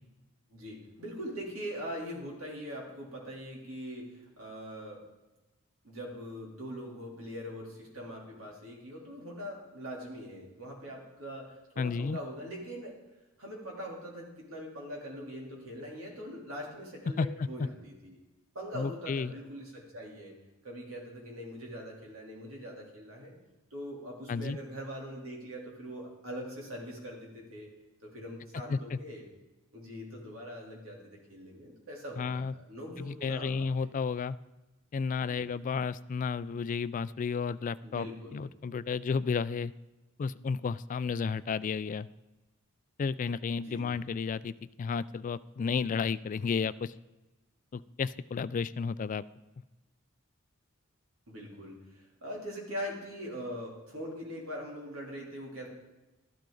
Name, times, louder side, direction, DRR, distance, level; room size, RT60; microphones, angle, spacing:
voice 1, 0.5-5.0 5.8-13.0 13.4-18.2 18.5-20.3 20.6-23.3 23.7-27.7 28.0-29.2 29.7-33.9 35.2-35.4 37.8-38.4 43.6-43.9 51.3-55.7, equal, 85° right, -2 dB, 3.2 m, -42 dB
voice 2, 11.8-12.2 17.2-17.5 18.7-19.3 24.3-24.6 28.7-29.0 32.2-32.5 33.0-34.4 34.9-38.1 38.3-39.7 40.2-42.1 43.0-46.9 47.7-49.2, left 5 dB, 40° left, 16 dB, 0.3 m, -32 dB
13.0 x 12.0 x 3.9 m, 1.1 s
head